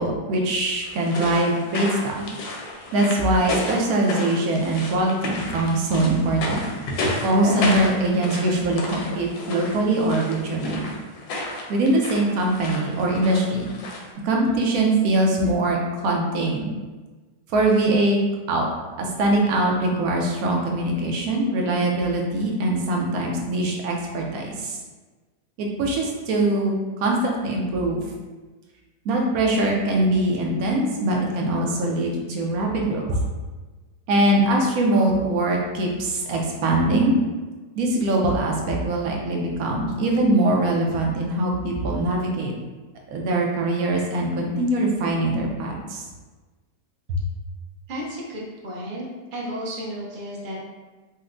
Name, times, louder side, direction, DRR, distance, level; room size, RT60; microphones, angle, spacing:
voice 1, 0.0-2.2 2.9-6.6 7.2-10.9 11.7-13.7 14.2-16.7 17.5-18.2 18.5-18.7 19.0-24.8 25.6-26.7 27.0-28.1 29.0-33.2 34.1-37.1 37.8-42.5 43.1-46.1 47.1-47.2, right 1 dB, 70° right, 0 dB, 1.0 m, -22 dB
sound 1, 0.8-14.1, left 2 dB, 80° left, 1.1 m, -32 dB
voice 2, 47.9-49.1 49.3-50.6, equal, 55° right, -4 dB, 0.6 m, -33 dB
4.2 x 2.1 x 2.4 m, 1.3 s
omnidirectional pair, 1.7 m